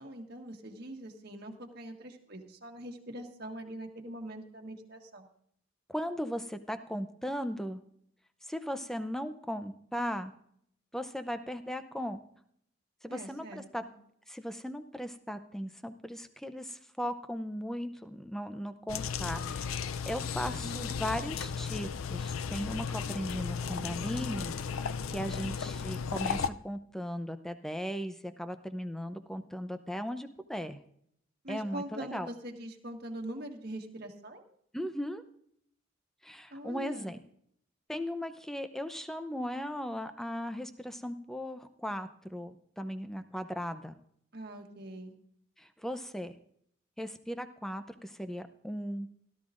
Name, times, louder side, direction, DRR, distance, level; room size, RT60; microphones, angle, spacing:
voice 1, 0.0-5.3 13.1-13.9 20.6-21.4 25.3-25.7 31.4-34.4 36.5-37.1 44.3-45.1, right 1 dB, 50° right, 2 dB, 1.5 m, -43 dB
voice 2, 5.9-7.8 8.4-10.3 10.9-12.2 13.0-13.8 14.3-30.8 31.5-32.3 34.7-35.2 36.2-37.2 37.9-44.0 45.6-46.3 47.0-49.1, equal, ahead, 9 dB, 0.6 m, -37 dB
sound 1, 18.9-26.5, left 6 dB, 90° left, 0.5 m, -35 dB
17.0 x 12.5 x 2.5 m, 0.68 s
head